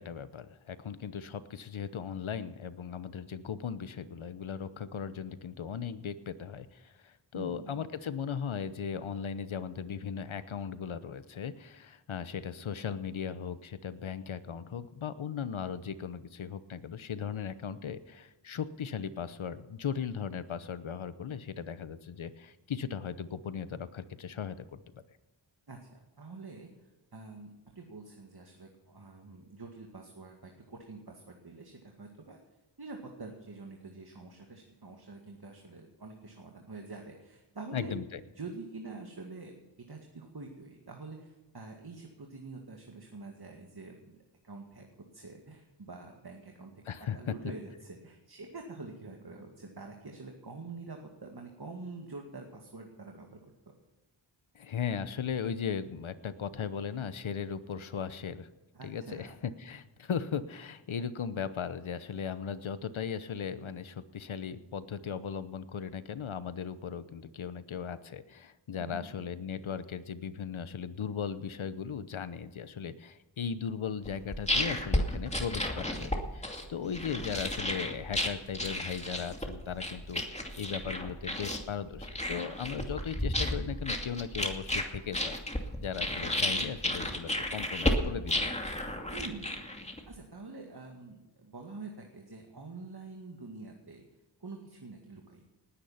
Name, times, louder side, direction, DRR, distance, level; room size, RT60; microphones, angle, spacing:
voice 1, 0.0-25.0 37.7-38.2 46.9-47.3 54.5-58.5 58.8-80.2 80.6-85.4 85.8-88.5, left 7 dB, 85° left, 14 dB, 1.0 m, -37 dB
voice 2, 7.3-7.8 25.7-26.7 27.1-32.4 32.8-37.9 38.4-39.6 39.9-44.1 44.4-44.9 45.1-46.7 47.1-53.4 58.7-59.4 68.8-69.2 89.1-89.7 90.1-94.0 94.4-95.5, right 3 dB, 55° right, 2 dB, 2.2 m, -46 dB
sound 1, 74.0-90.2, left 1 dB, 15° left, 2.5 m, -33 dB
19.0 x 9.8 x 5.7 m, 1.1 s
cardioid pair, 40°, 47 cm